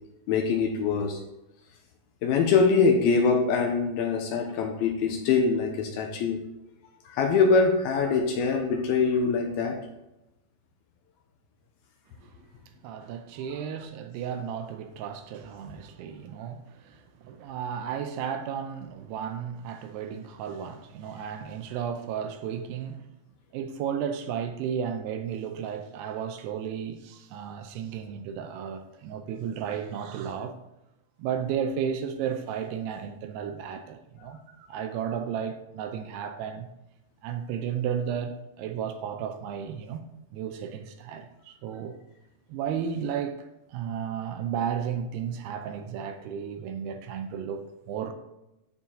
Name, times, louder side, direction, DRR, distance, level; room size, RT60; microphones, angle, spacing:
voice 1, 0.3-1.2 2.2-6.4 7.1-9.8, left 5 dB, 75° left, 2.4 m, -23 dB
voice 2, 12.8-23.1 23.5-30.6 31.2-36.7 37.2-40.1 40.3-42.0 42.5-48.1, right 8 dB, 80° right, 2.6 m, -33 dB
13.0 x 4.5 x 3.8 m
omnidirectional pair, 4.9 m